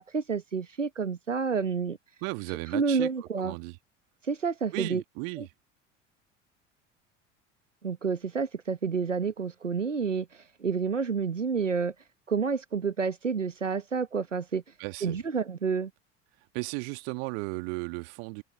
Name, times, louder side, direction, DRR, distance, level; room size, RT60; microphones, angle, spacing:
voice 1, 0.0-2.0 2.5-3.5 4.2-5.0 5.4-5.5 7.8-11.9 12.3-14.6 15.0-15.9, right 5 dB, 85° right, 1.1 m, -29 dB
voice 2, 2.2-3.1 3.4-3.8 4.7-5.5 14.8-15.2 16.5-18.4, right 36 dB, 55° right, 1.9 m, -35 dB
open air
figure-of-eight pair, 65°, 36 cm